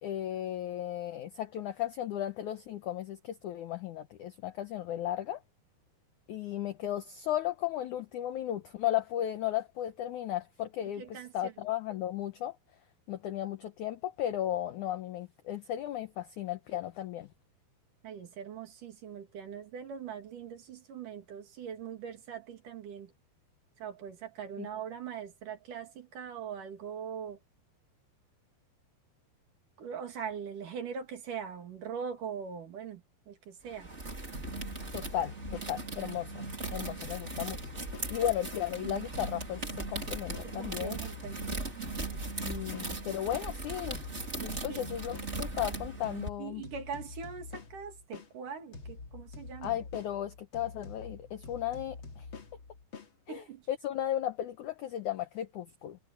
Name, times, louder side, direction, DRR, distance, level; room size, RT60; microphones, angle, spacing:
voice 1, 0.0-5.4 6.3-11.0 11.3-12.6 13.1-17.3 24.6-24.7 34.9-37.6 38.1-39.6 39.9-41.0 42.4-44.0 44.4-46.6 49.6-52.2 53.3-53.4 53.7-56.0, left 12 dB, 75° left, 1.8 m, -35 dB
voice 2, 11.0-11.5 18.0-23.1 23.8-27.4 29.8-33.9 40.4-42.0 44.7-44.8 46.4-49.8 53.3-53.7, right 7 dB, 55° right, 3.6 m, -42 dB
sound 1, 33.7-46.3, right 3 dB, 15° right, 3.4 m, -39 dB
sound 2, 34.3-38.7 39.1-43.5 43.9-48.3 48.7-53.1, left 4 dB, 35° left, 2.4 m, -47 dB
omnidirectional pair, 4.8 m